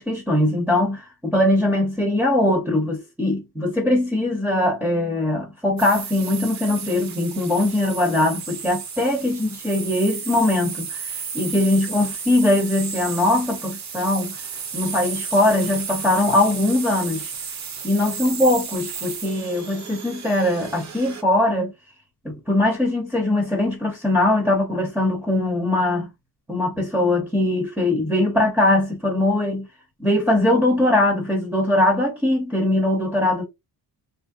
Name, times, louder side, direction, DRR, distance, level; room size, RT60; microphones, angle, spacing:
voice 1, 0.0-11.0 11.3-14.4 14.7-17.3 17.8-21.7 22.2-26.1 26.5-29.7 30.0-33.4, left 1 dB, 5° right, 0.7 m, -21 dB
sound 1, 5.8-21.2, right 6 dB, 45° right, 0.7 m, -33 dB
3.1 x 2.7 x 2.3 m
cardioid pair, 170°, 41 cm